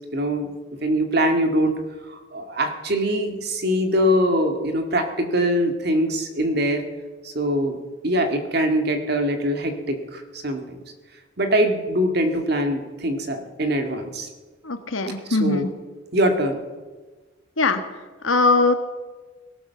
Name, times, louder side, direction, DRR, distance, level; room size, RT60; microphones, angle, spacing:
voice 1, 0.1-1.8 2.1-6.8 7.2-7.8 8.0-10.8 11.4-14.3 15.3-15.7 16.1-16.6, equal, 55° right, 6 dB, 1.9 m, -23 dB
voice 2, 14.6-15.7 17.6-17.8 18.2-18.7, left 3 dB, 85° left, 9 dB, 1.5 m, -20 dB
18.0 x 12.0 x 7.0 m, 1.3 s
head